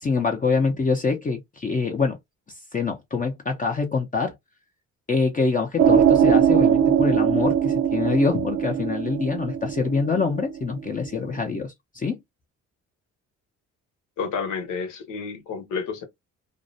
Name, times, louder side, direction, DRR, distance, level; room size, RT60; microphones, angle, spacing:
voice 1, 0.0-2.2 2.7-4.3 5.1-12.2, left 4 dB, 25° left, 0.6 m, -25 dB
sound 1, 5.8-11.0, right 8 dB, 65° right, 0.5 m, -20 dB
voice 2, 14.2-16.0, left 5 dB, 80° left, 1.0 m, -30 dB
2.5 x 2.1 x 2.6 m
cardioid pair, 90°, 30 cm